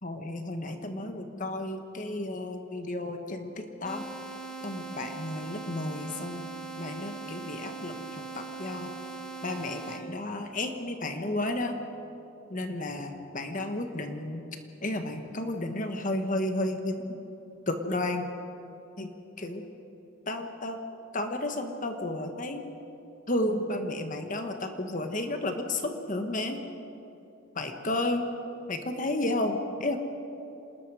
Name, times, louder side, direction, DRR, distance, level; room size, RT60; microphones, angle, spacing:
voice 1, 0.0-4.0 4.6-6.5 6.8-8.9 9.4-11.8 12.5-14.4 14.8-17.2 17.7-18.3 19.0-19.1 19.4-19.6 20.3-20.8 21.1-22.6 23.3-26.6 27.5-28.3 28.7-30.0, left 1 dB, 40° left, 6 dB, 1.4 m, -32 dB
sound 1, 3.8-10.0, right 4 dB, 5° left, 1.6 m, -40 dB
27.0 x 20.0 x 4.9 m, 2.9 s
head